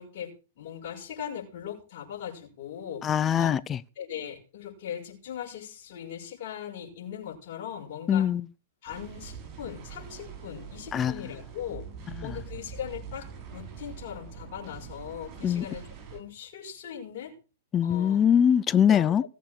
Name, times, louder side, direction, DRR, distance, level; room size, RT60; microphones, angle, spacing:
voice 1, 0.0-3.0 3.4-3.5 4.0-8.3 8.8-11.9 12.2-17.3 17.8-18.2 18.9-19.1, left 9 dB, 55° left, 5.9 m, -39 dB
voice 2, 3.0-3.8 8.1-8.4 10.9-11.1 12.2-12.3 15.4-15.6 17.7-19.2, left 8 dB, 25° left, 0.6 m, -22 dB
sound 1, 8.9-16.2, right 6 dB, 35° right, 7.3 m, -44 dB
17.5 x 8.2 x 6.5 m
hypercardioid pair, 115°, 0 cm